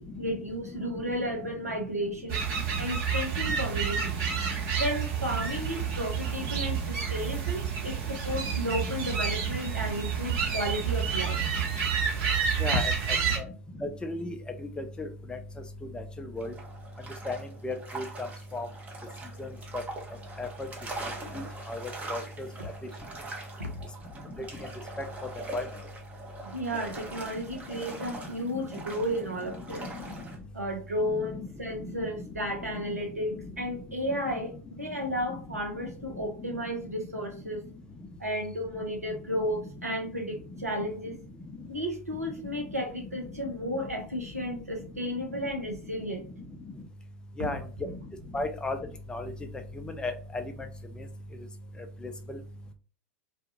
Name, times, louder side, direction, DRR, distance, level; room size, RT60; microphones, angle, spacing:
voice 1, 0.0-2.4 2.8-4.2 4.8-11.4 23.6-23.9 26.4-29.9 30.5-34.5 34.8-37.7 38.2-41.2 41.7-46.3, equal, 85° right, 1 dB, 0.7 m, -33 dB
sound 1, 2.3-13.4, right 7 dB, 50° right, 1.0 m, -29 dB
voice 2, 12.6-12.9 13.4-13.5 13.8-14.4 14.8-15.4 15.9-16.5 17.3-17.4 17.6-18.3 18.5-18.7 19.4-19.8 20.4-20.5 21.0-21.1 21.3-21.8 22.1-22.5 25.5-25.6 47.4-47.6 48.3-48.8 49.1-49.3 49.8-50.4 52.3-52.4, left 2 dB, 10° left, 7 dB, 0.4 m, -34 dB
sound 2, 16.4-30.4, right 2 dB, 20° right, 0.7 m, -42 dB
2.4 x 2.3 x 2.8 m, 0.37 s
figure-of-eight pair, 90°, 8 cm